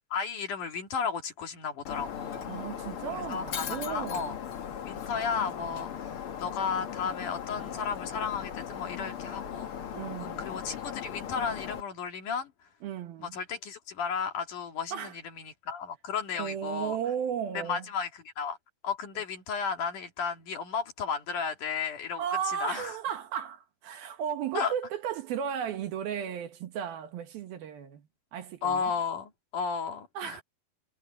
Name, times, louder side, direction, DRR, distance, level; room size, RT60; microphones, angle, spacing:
voice 1, 0.1-2.5 3.1-4.4 4.9-9.9 10.2-12.5 13.2-17.0 17.5-18.6 18.8-22.2 22.5-23.0 24.5-24.7 28.6-30.4, left 6 dB, 55° left, 3.2 m, -34 dB
Shatter, 1.8-11.8, left 8 dB, 85° left, 1.2 m, -38 dB
voice 2, 2.5-4.3 9.9-10.6 12.8-13.4 14.9-15.1 16.4-17.9 22.2-28.1 28.3-28.9 30.1-30.4, right 8 dB, 65° right, 3.1 m, -35 dB
omnidirectional pair, 4.9 m